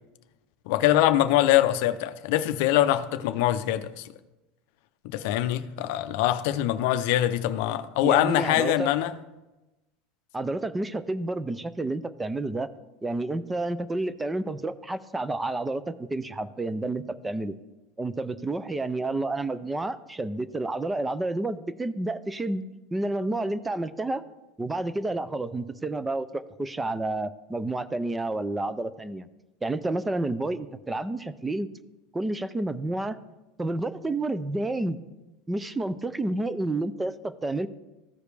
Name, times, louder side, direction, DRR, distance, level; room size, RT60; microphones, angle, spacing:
voice 1, 0.7-4.1 5.0-9.1, left 13 dB, 55° left, 0.5 m, -23 dB
voice 2, 8.0-8.9 10.3-12.7 13.0-17.6 18.0-22.6 22.9-24.2 24.6-29.3 29.6-31.7 32.1-33.2 33.6-35.0 35.5-37.7, right 2 dB, 5° right, 0.3 m, -30 dB
14.5 x 5.0 x 3.3 m
supercardioid pair, 175°, 0 cm